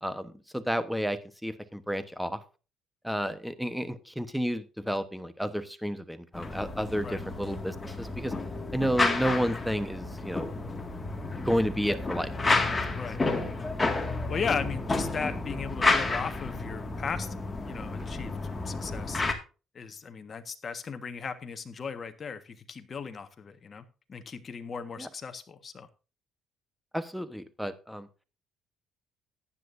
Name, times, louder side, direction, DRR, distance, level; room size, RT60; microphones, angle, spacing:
voice 1, 0.0-2.4 3.0-8.3 8.7-10.5 11.4-12.3 25.0-25.1 26.9-28.1, equal, ahead, 12 dB, 1.1 m, -31 dB
sound 1, 6.3-19.3, left 3 dB, 20° left, 2.0 m, -31 dB
voice 2, 14.3-17.3 17.6-18.4 18.6-19.2 19.7-23.8 24.1-25.9, left 6 dB, 35° left, 8 dB, 1.4 m, -36 dB
14.5 x 10.0 x 2.6 m, 0.33 s
cardioid pair, 110°, 0 cm